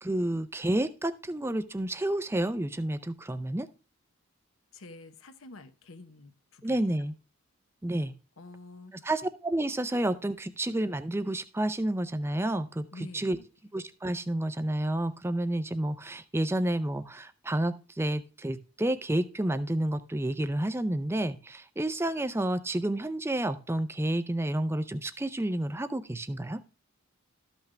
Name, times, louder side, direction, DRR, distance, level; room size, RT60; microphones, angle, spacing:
voice 1, 0.0-3.7 6.6-7.1 7.8-8.1 9.0-12.8 13.1-13.4 13.7-26.6, right 1 dB, 10° right, 12 dB, 0.4 m, -30 dB
voice 2, 4.7-6.9 8.4-9.1 12.9-13.5, left 2 dB, 70° left, 10 dB, 1.0 m, -48 dB
13.0 x 5.8 x 3.3 m, 0.34 s
head